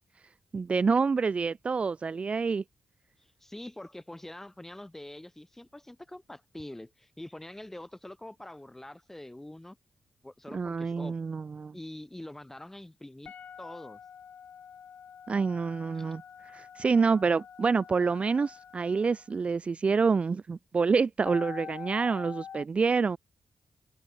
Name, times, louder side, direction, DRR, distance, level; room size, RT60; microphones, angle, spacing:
voice 1, 0.5-2.6 10.5-11.7 15.3-16.2 16.5-23.2, right 5 dB, 40° right, 0.4 m, -27 dB
voice 2, 3.4-9.8 10.2-11.1 11.7-14.0 15.9-16.1, left 1 dB, 10° left, 4.8 m, -45 dB
sound 1, 13.2-19.3 21.2-22.6, left 7 dB, 70° left, 1.4 m, -46 dB
cardioid pair, 75°, 3 cm